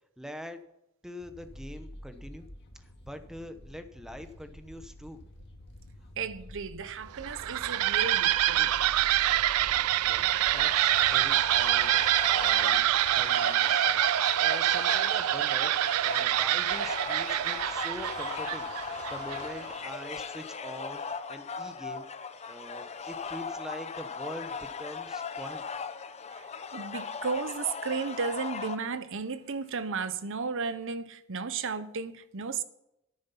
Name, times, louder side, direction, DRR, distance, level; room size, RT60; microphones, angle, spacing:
voice 1, 0.2-0.6 1.0-2.5 3.0-5.2 10.0-14.0 14.4-18.7 19.1-21.0 21.3-22.1 22.5-25.6, left 1 dB, ahead, 0.9 m, -44 dB
sound 1, 1.2-13.2, equal, 50° left, 2.1 m, -48 dB
voice 2, 6.2-8.8 26.3-26.4 26.7-32.6, right 5 dB, 60° right, 0.8 m, -34 dB
sound 2, 7.1-19.7, right 13 dB, 85° right, 0.4 m, -26 dB
sound 3, 10.2-28.8, left 5 dB, 30° left, 0.6 m, -38 dB
10.5 x 9.5 x 5.7 m
head